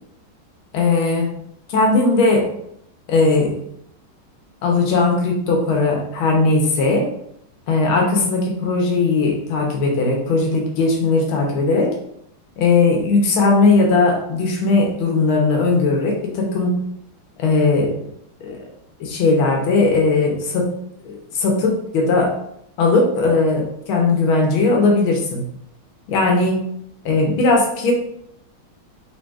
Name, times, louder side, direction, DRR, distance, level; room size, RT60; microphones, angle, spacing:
voice 1, 0.7-1.3 1.7-2.5 3.1-3.6 4.6-7.1 7.7-11.9 12.6-16.8 17.4-18.1 18.4-18.6 19.0-20.7 21.0-22.3 22.8-25.5 26.1-26.6 27.0-27.9, left 3 dB, 80° left, 1 dB, 1.7 m, -18 dB
5.2 x 3.7 x 2.4 m, 0.73 s
omnidirectional pair, 2.3 m